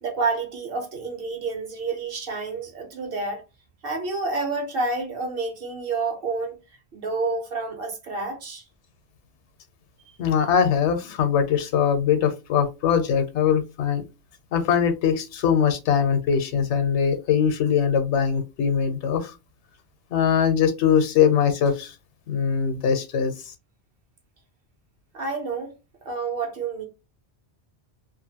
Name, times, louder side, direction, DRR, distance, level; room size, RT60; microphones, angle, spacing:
voice 1, 0.0-3.4 3.8-6.6 6.9-8.6 25.1-25.7 26.0-26.9, right 3 dB, 60° right, 1.0 m, -29 dB
voice 2, 10.2-14.0 14.5-19.3 20.1-21.9 22.3-23.3, left 7 dB, 90° left, 0.9 m, -21 dB
2.5 x 2.4 x 2.7 m
omnidirectional pair, 1.1 m